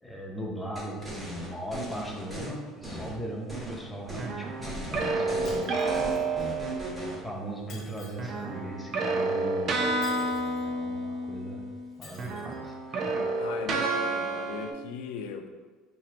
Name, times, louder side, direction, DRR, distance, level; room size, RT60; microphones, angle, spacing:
voice 1, 0.0-11.7 12.0-13.2, right 1 dB, 5° left, -1 dB, 0.5 m, -39 dB
sound 1, 0.7-2.5 2.8-3.8 4.1-4.3 4.6-7.2, right 1 dB, 15° right, 0.9 m, -37 dB
sound 2, 4.2-7.3 8.2-11.9 12.1-14.7, right 3 dB, 40° right, 0.4 m, -30 dB
Shatter, 5.4-6.4 7.7-8.4 10.0-10.7 12.0-12.6, left 3 dB, 40° left, 0.9 m, -49 dB
voice 2, 13.4-15.5, left 6 dB, 85° left, 5 dB, 0.4 m, -39 dB
4.3 x 3.0 x 2.5 m, 1.4 s
cardioid pair, 145°, 0 cm